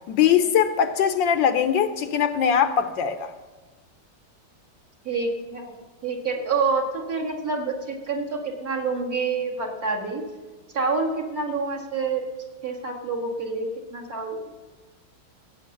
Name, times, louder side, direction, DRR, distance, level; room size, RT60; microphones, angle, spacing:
voice 1, 0.1-3.3, left 8 dB, 70° left, 9 dB, 1.3 m, -21 dB
voice 2, 5.1-5.7 6.0-10.2 10.7-12.2 12.6-14.5, right 4 dB, 45° right, 0 dB, 2.1 m, -27 dB
16.0 x 8.6 x 6.4 m, 1.3 s
omnidirectional pair, 2.2 m